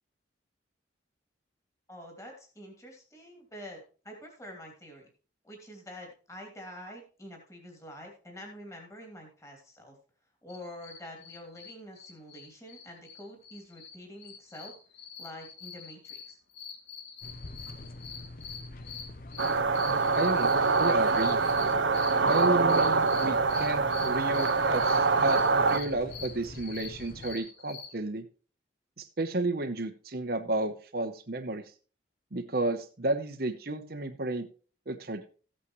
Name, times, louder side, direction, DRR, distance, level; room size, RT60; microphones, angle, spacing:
voice 1, 1.9-5.1 5.4-9.9 10.4-14.7 15.2-16.4, left 1 dB, 15° left, 1 dB, 3.0 m, -47 dB
sound 1, 10.5-27.9, left 6 dB, 70° left, 1.8 m, -45 dB
sound 2, 17.2-27.4, left 1 dB, 50° left, 0.9 m, -45 dB
sound 3, 19.4-25.8, right 4 dB, 85° right, 0.9 m, -25 dB
voice 2, 20.1-20.5 20.8-21.4 22.3-28.2 29.0-31.6 32.3-34.5 34.9-35.3, right 2 dB, 55° right, 5 dB, 1.0 m, -32 dB
15.0 x 8.6 x 3.2 m, 0.38 s
head